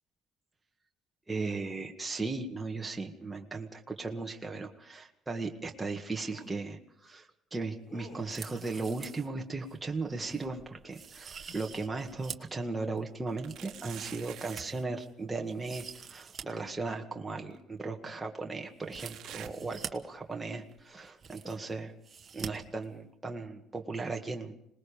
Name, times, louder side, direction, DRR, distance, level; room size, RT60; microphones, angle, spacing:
voice 1, 1.3-21.9 22.3-24.6, right 3 dB, 15° right, 2 dB, 1.9 m, -37 dB
sound 1, 6.3-6.5 7.9-9.1 9.8-10.8 11.3-11.8, left 1 dB, 45° left, 7.6 m, -53 dB
sound 2, 8.2-9.3 9.7-9.8 10.3-10.5 10.9-12.6 13.0-15.1 15.5-16.4 16.7-16.8 18.8-19.9 20.7-20.8 21.0-21.7 22.0-22.5 22.8-22.9, right 6 dB, 35° right, 1.7 m, -46 dB
sound 3, 8.8-9.5 9.9-11.8 12.3-12.4 13.4-14.8 16.5-16.6 17.5-17.6 18.9-20.3 20.7-21.1 21.7-21.8 22.7-22.8, right 11 dB, 70° right, 1.4 m, -49 dB
26.0 x 20.0 x 5.2 m, 0.75 s
cardioid pair, 100°, 0 cm